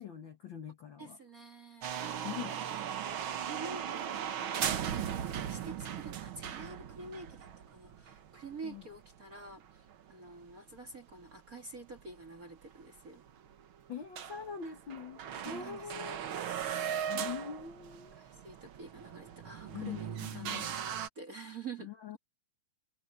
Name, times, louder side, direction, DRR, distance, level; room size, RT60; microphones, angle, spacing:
voice 1, 0.0-1.2 2.2-2.6 8.6-8.8 13.9-16.3 17.1-18.2 19.7-20.7 21.8-22.2, left 8 dB, 55° left, 1.4 m, -43 dB
voice 2, 1.0-2.1 3.1-13.2 15.4-15.9 16.6-16.8 18.2-22.2, right 3 dB, 30° right, 1.9 m, -48 dB
sound 1, 1.8-10.0 10.3-10.4 10.9-11.0 12.0-12.1 12.3-12.4 12.8-12.9 13.3-13.6 13.9-14.0 14.2-21.1, right 9 dB, 65° right, 1.2 m, -38 dB
omnidirectional pair, 3.9 m